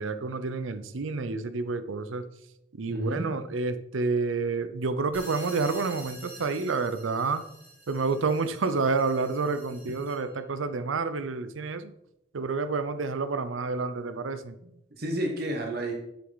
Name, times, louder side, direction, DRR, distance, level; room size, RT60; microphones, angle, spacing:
voice 1, 0.0-2.3 2.7-7.4 7.9-11.9 12.3-14.6, right 4 dB, 85° right, 11 dB, 0.6 m, -29 dB
voice 2, 2.9-3.3 14.6-15.9, right 1 dB, 50° right, 1 dB, 1.1 m, -31 dB
sound 1, 5.1-10.4, right 2 dB, 10° right, 2.2 m, -48 dB
7.7 x 6.8 x 4.0 m, 0.84 s
head